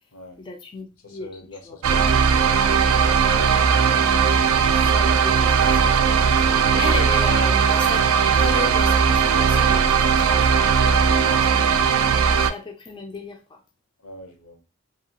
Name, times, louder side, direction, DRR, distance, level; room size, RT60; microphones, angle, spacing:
voice 1, 0.4-1.3 1.6-1.8 4.5-6.1 6.4-8.1 8.3-11.5 12.5-13.6, left 3 dB, 20° left, 0.3 m, -35 dB
voice 2, 1.0-2.3 10.7-11.6 14.0-14.6, left 2 dB, 80° left, 0.7 m, -40 dB
sound 1, 1.8-12.5, right 6 dB, 70° right, 0.3 m, -18 dB
2.7 x 2.3 x 2.8 m
head